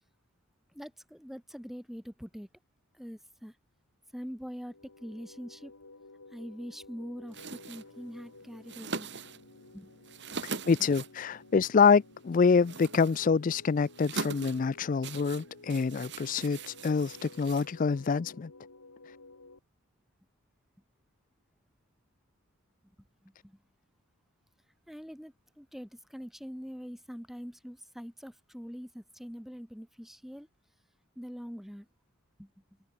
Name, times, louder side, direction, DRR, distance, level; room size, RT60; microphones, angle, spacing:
voice 1, 0.7-2.5 2.9-3.6 4.1-5.7 6.3-9.1 9.7-9.9 10.3-10.4 10.8-10.9 23.2-23.6 24.9-30.5 31.2-31.9 32.4-32.5, equal, ahead, 2.2 m, -44 dB
sound 1, 4.6-19.6, left 2 dB, 90° left, 3.2 m, -54 dB
sound 2, 7.3-18.2, right 4 dB, 55° right, 2.5 m, -43 dB
voice 2, 10.4-18.5, left 5 dB, 40° left, 0.3 m, -26 dB
head